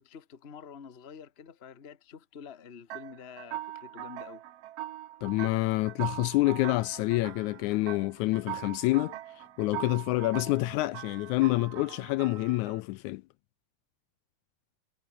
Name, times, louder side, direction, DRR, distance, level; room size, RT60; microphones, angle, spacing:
voice 1, 0.0-4.4, left 7 dB, 35° left, 1.0 m, -48 dB
sound 1, 2.9-12.8, right 13 dB, 65° right, 1.8 m, -41 dB
voice 2, 5.2-9.2 9.6-13.2, left 20 dB, 80° left, 1.9 m, -27 dB
omnidirectional pair, 3.6 m